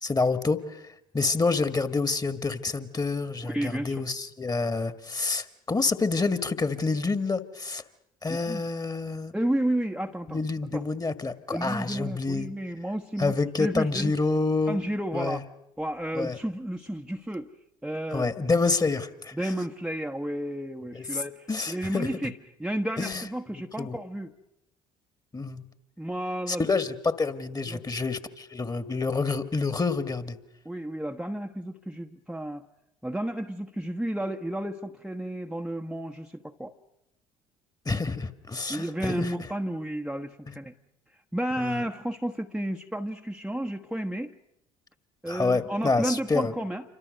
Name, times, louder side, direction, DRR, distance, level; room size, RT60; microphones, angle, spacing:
voice 1, 0.0-0.8 1.1-7.8 8.2-9.3 10.3-12.5 13.2-14.8 15.1-15.4 16.1-16.4 18.1-19.5 20.9-21.2 21.5-22.1 23.0-23.3 23.8-24.0 25.3-25.6 26.5-30.4 37.9-39.3 41.6-41.8 45.3-46.5, left 3 dB, 20° left, 12 dB, 2.0 m, -28 dB
voice 2, 3.4-4.0 8.3-8.6 9.3-10.4 10.7-10.8 11.5-14.1 14.7-15.4 15.8-17.5 17.8-18.3 19.3-22.3 22.6-24.3 26.0-26.6 27.7-27.8 30.6-32.6 33.0-36.7 38.7-40.7 41.3-44.3 45.2-46.8, right 1 dB, 5° right, 3 dB, 1.2 m, -32 dB
28.0 x 24.5 x 6.6 m, 0.82 s
figure-of-eight pair, 55°, 19 cm